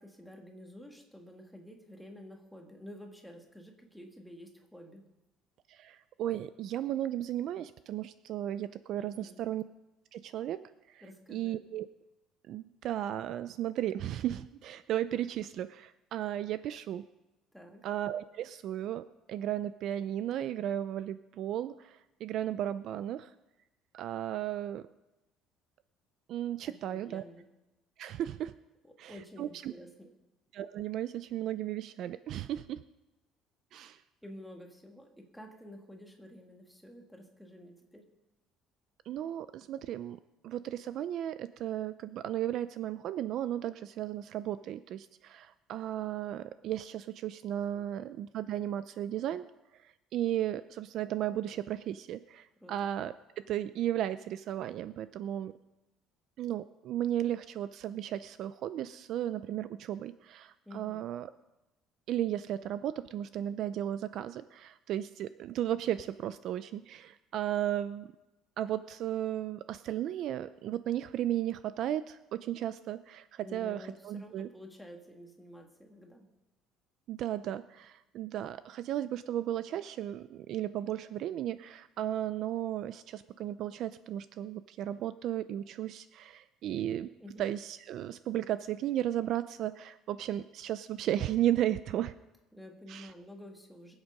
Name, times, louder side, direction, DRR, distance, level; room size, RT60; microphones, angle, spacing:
voice 1, 0.0-5.0 9.0-9.4 11.0-11.6 17.5-17.9 26.7-27.4 28.8-30.1 34.2-38.1 47.7-48.0 52.6-52.9 60.6-61.0 73.4-76.3 87.2-87.5 92.5-94.0, left 1 dB, ahead, 2 dB, 1.5 m, -50 dB
voice 2, 5.7-9.6 10.1-10.6 10.9-11.0 11.3-11.9 12.5-17.0 17.8-19.0 19.3-23.3 23.9-24.8 26.3-27.2 28.0-28.5 29.0-29.7 30.5-32.8 33.7-34.0 39.1-40.2 40.4-49.4 50.1-55.5 56.4-61.3 62.1-68.1 68.6-74.5 77.1-87.1 87.4-92.1 92.9-93.1, right 12 dB, 45° right, 14 dB, 0.4 m, -35 dB
22.0 x 8.0 x 5.3 m, 0.99 s
cardioid pair, 180°, 0 cm